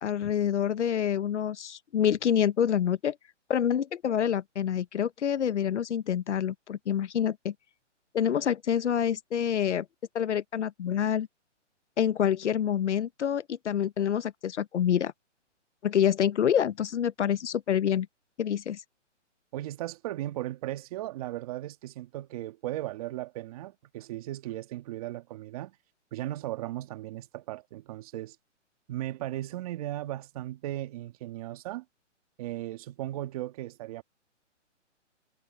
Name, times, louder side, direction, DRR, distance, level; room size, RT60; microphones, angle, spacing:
voice 1, 0.0-3.2 3.5-7.5 8.1-9.8 10.1-11.3 12.0-15.1 15.8-18.1 18.4-18.8, left 9 dB, 70° left, 1.0 m, -27 dB
voice 2, 19.5-25.7 26.1-28.4 28.9-31.8 32.4-34.0, right 15 dB, 30° right, 2.0 m, -36 dB
hypercardioid pair, 155°, 36 cm